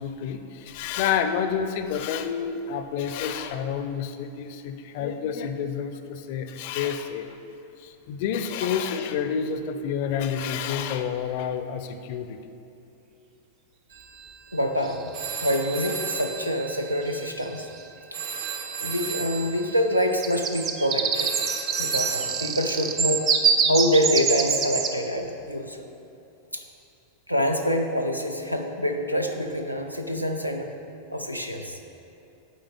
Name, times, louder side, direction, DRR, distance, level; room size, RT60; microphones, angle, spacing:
voice 1, 0.0-7.4 7.8-12.4, left 7 dB, 50° left, 8 dB, 0.4 m, -29 dB
sound 1, 10.4-10.5 14.8-15.4 17.1-17.2 17.4-17.8 20.0-24.9, right 6 dB, 30° right, 0.5 m, -25 dB
sound 2, 13.9-23.5, right 6 dB, 55° right, 0.9 m, -36 dB
voice 2, 14.5-15.1 15.4-17.7 18.8-21.3 21.8-23.3 23.7-25.9 26.5-26.6 27.3-30.7 31.1-31.8, equal, 90° right, 4 dB, 0.5 m, -26 dB
8.9 x 3.8 x 5.0 m, 2.7 s
figure-of-eight pair, 90°, 0 cm